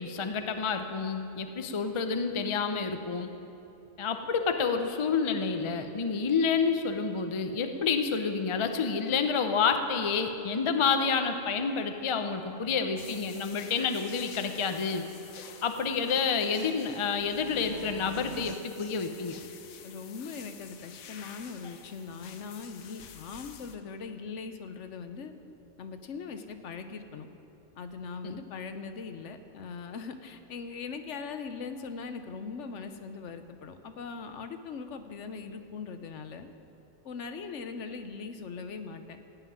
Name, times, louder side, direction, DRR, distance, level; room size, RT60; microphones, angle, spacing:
voice 1, 0.0-3.3 4.0-15.0 15.6-19.4 28.2-28.4, left 5 dB, 40° left, 7 dB, 0.4 m, -29 dB
sound 1, 12.2-12.3 12.6-12.7 13.0-13.1 13.4-13.5 13.8-15.1 15.4-18.5, right 6 dB, 70° right, 0.4 m, -47 dB
sound 2, 13.0-23.8, left 7 dB, 80° left, 1.2 m, -49 dB
voice 2, 19.8-25.3 25.8-27.3 27.8-36.5 37.0-39.2, left 5 dB, 65° left, 8 dB, 1.0 m, -40 dB
15.5 x 5.8 x 9.3 m, 2.9 s
omnidirectional pair, 1.4 m